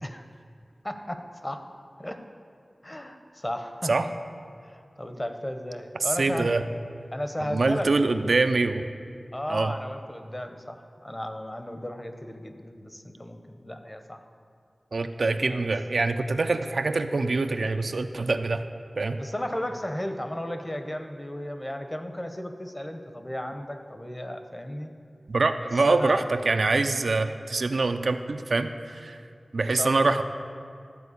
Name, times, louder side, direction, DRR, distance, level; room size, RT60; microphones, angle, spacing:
voice 1, 0.8-1.6 2.0-2.2 2.8-3.9 4.6-6.5 7.1-7.9 9.3-14.2 15.3-15.7 19.2-24.9 25.6-26.3 29.8-30.1, left 1 dB, 20° left, 7 dB, 0.8 m, -35 dB
voice 2, 6.2-6.6 7.4-8.9 9.5-9.7 14.9-18.6 19.0-19.2 25.3-29.2 29.5-30.2, right 3 dB, 85° right, 8 dB, 0.5 m, -24 dB
12.5 x 4.5 x 8.3 m, 2.3 s
wide cardioid pair, 70°, 0 cm